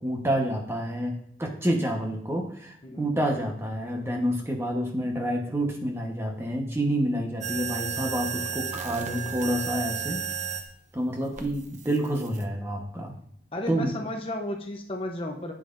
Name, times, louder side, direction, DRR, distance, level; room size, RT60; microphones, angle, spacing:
voice 1, 0.0-10.2 10.9-13.1 13.7-13.9, right 1 dB, 15° right, 1 dB, 1.1 m, -28 dB
sound 1, 7.4-10.7 11.4-12.4, right 7 dB, 40° right, 0.7 m, -33 dB
voice 2, 13.5-15.5, left 1 dB, 30° left, 2 dB, 0.8 m, -33 dB
11.0 x 7.4 x 2.6 m, 0.67 s
head